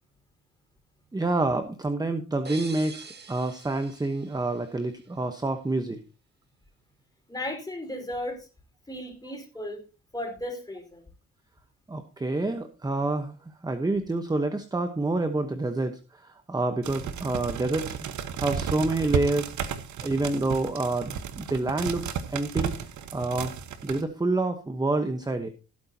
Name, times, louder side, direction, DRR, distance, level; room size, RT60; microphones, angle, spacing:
voice 1, 1.1-6.0 11.9-18.0 18.4-19.5 20.0-22.7 23.1-23.5 23.8-25.5, right 2 dB, 15° right, 8 dB, 1.0 m, -28 dB
sound 1, 2.4-5.2, right 4 dB, 35° right, 1.8 m, -45 dB
voice 2, 7.3-8.5 8.9-9.8 10.1-11.0, left 1 dB, 15° left, 2 dB, 4.7 m, -35 dB
sound 2, 16.8-24.0, right 7 dB, 70° right, 1.2 m, -33 dB
16.5 x 9.1 x 2.8 m, 0.32 s
cardioid pair, 90°, 30 cm